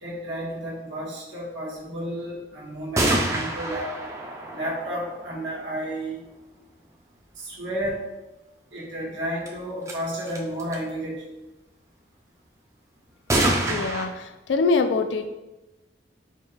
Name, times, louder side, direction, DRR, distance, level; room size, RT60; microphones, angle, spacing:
voice 1, 0.0-3.9 4.5-6.2 7.4-8.0 8.7-11.2, equal, 90° right, -6 dB, 1.3 m, -32 dB
sound 1, 3.0-5.8 9.5-9.6 9.9-10.0 10.3-10.8 13.3-14.1, right 1 dB, 15° right, 0.4 m, -26 dB
voice 2, 13.7-15.3, left 4 dB, 85° left, 8 dB, 0.4 m, -24 dB
4.4 x 2.3 x 3.2 m, 1.0 s
head